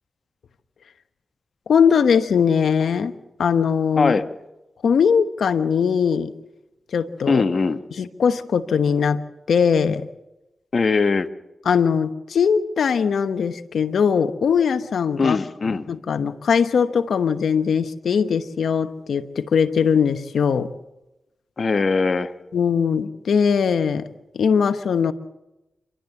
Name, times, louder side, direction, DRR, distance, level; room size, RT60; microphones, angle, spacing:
voice 1, 1.7-3.1 3.4-4.1 4.8-6.3 6.9-7.4 8.0-9.2 9.5-10.0 11.7-15.4 15.9-20.7 22.5-24.1 24.3-25.1, left 6 dB, 80° left, 10 dB, 1.1 m, -20 dB
voice 2, 4.0-4.3 7.3-7.8 10.7-11.3 15.2-15.9 21.6-22.3, left 4 dB, 55° left, 10 dB, 1.2 m, -20 dB
27.5 x 12.5 x 8.3 m, 0.97 s
cardioid pair, 50°, 0 cm